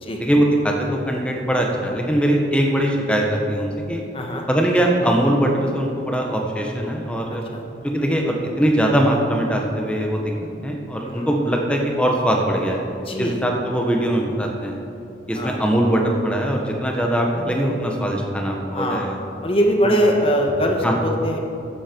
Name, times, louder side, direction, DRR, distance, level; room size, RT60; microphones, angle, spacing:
voice 1, 0.2-4.0 4.5-7.4 7.8-10.3 10.6-12.8 13.2-14.8 15.3-19.2 20.8-20.9, right 1 dB, 5° left, 1 dB, 1.4 m, -21 dB
voice 2, 4.1-4.4 7.5-7.6 11.0-11.3 13.0-13.4 15.3-15.6 18.7-19.1 19.4-21.4, equal, 30° left, 1 dB, 1.4 m, -21 dB
15.0 x 10.5 x 4.7 m, 2.7 s
head